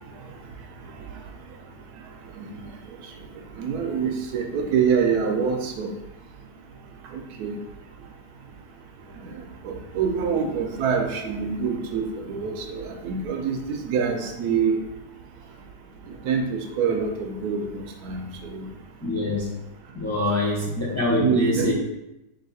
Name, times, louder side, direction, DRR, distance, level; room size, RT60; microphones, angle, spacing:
voice 1, 3.6-5.9 7.4-7.6 9.6-13.6 13.8-14.8 16.2-18.3 18.5-18.7 21.1-21.7, right 6 dB, 75° right, 3 dB, 1.0 m, -25 dB
voice 2, 19.0-19.5 19.9-21.7, left 1 dB, 20° left, -5 dB, 0.4 m, -24 dB
3.8 x 2.8 x 4.1 m, 0.93 s
omnidirectional pair, 1.8 m